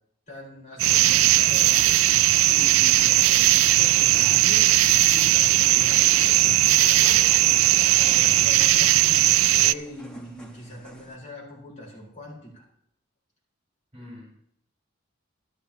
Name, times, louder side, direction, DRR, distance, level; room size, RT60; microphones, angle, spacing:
voice 1, 0.3-7.2 7.7-12.7, left 1 dB, 35° left, -4 dB, 4.5 m, -41 dB
sound 1, 0.8-9.7, right 14 dB, 80° right, 0.3 m, -18 dB
sound 2, 3.1-11.2, equal, 5° left, 1.3 m, -46 dB
voice 2, 7.4-7.8 13.9-14.3, left 1 dB, 30° right, -4 dB, 5.7 m, -46 dB
14.5 x 12.0 x 2.9 m, 0.71 s
head